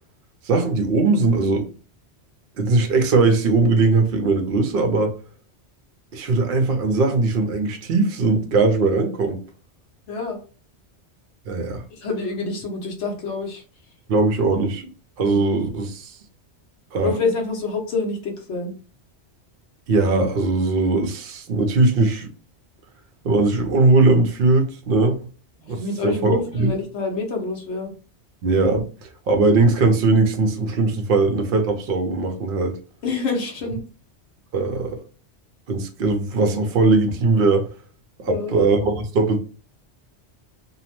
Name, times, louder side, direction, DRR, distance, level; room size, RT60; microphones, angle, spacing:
voice 1, 0.4-1.7 2.6-5.1 6.1-9.4 11.5-11.8 14.1-14.9 15.2-16.2 16.9-17.1 19.9-22.3 23.2-25.2 25.7-26.7 28.4-32.8 34.5-35.0 35.7-37.7 38.2-39.4, right 3 dB, 60° right, 0.7 m, -20 dB
voice 2, 10.1-10.4 11.9-13.6 15.2-15.4 17.0-18.7 25.6-27.9 33.0-33.8 38.3-38.7, left 3 dB, 80° left, 1.1 m, -27 dB
2.7 x 2.0 x 2.9 m
omnidirectional pair, 1.2 m